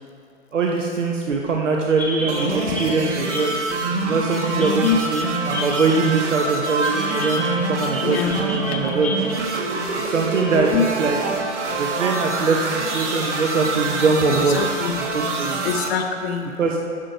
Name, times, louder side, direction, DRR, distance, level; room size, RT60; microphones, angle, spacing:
voice 1, 0.5-3.6 4.0-9.4 9.9-10.7 11.0-11.2 11.7-14.6 15.1-15.6 16.6-16.8, right 4 dB, 90° right, 1 dB, 1.0 m, -22 dB
sound 1, 2.0-9.4, left 2 dB, 5° left, 0.5 m, -33 dB
sound 2, 2.3-15.9, right 3 dB, 70° right, 1.4 m, -26 dB
voice 2, 4.6-5.0 8.0-8.4 10.5-10.8 14.3-15.0 15.6-16.5, left 7 dB, 55° left, 4 dB, 0.9 m, -24 dB
12.0 x 4.5 x 5.1 m, 2.4 s
hypercardioid pair, 125°, 36 cm